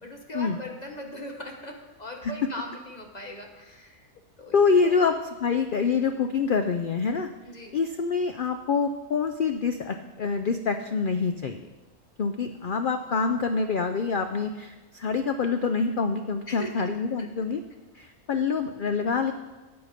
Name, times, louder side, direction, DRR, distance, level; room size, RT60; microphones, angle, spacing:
voice 1, 0.0-4.1 4.4-4.6 4.8-5.0 7.5-7.8 16.5-16.9 17.2-17.5, left 1 dB, 30° left, 2 dB, 1.2 m, -39 dB
voice 2, 4.5-5.2 5.4-7.3 7.7-11.6 12.2-17.6 17.9-19.3, left 5 dB, 80° left, 7 dB, 0.4 m, -26 dB
12.5 x 8.1 x 5.0 m, 1.2 s
omnidirectional pair, 1.6 m